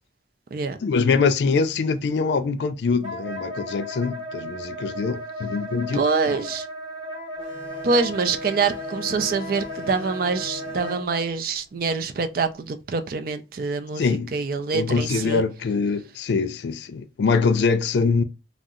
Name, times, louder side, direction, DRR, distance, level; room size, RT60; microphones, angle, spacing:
voice 1, 0.8-6.0 6.3-6.4 14.0-14.3 14.7-18.2, left 4 dB, 70° left, 0.3 m, -23 dB
Wind instrument woodwind instrument, 3.0-11.2, equal, 25° right, 0.8 m, -35 dB
voice 2, 5.9-6.7 7.8-15.4, right 4 dB, 50° right, 0.4 m, -25 dB
sound 1, 7.4-12.5, left 3 dB, 30° left, 0.6 m, -40 dB
2.6 x 2.0 x 3.6 m
head